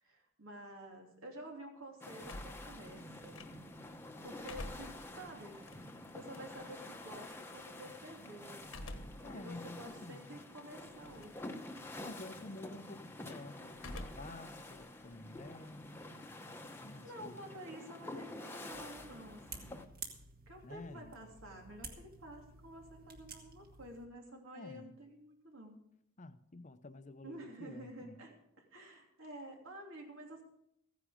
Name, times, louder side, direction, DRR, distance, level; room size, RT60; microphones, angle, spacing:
voice 1, 0.0-3.4 4.2-5.6 6.1-8.9 9.3-11.9 16.9-19.8 20.5-25.8 27.2-30.4, right 1 dB, 80° right, 3.0 m, -51 dB
sound 1, 2.0-19.9, left 1 dB, 10° left, 0.9 m, -49 dB
sound 2, 2.3-3.9 4.3-6.9 8.6-9.3 9.8-9.9 11.0-11.5 11.8-12.2 13.8-14.4 14.7-16.1, left 1 dB, 75° left, 1.3 m, -49 dB
voice 2, 9.2-10.4 12.0-16.0 16.8-17.6 20.6-21.1 24.5-25.0 26.2-28.2, left 2 dB, 35° left, 0.6 m, -50 dB
sound 3, 18.7-24.1, right 4 dB, 45° right, 1.8 m, -52 dB
15.0 x 10.0 x 5.1 m
head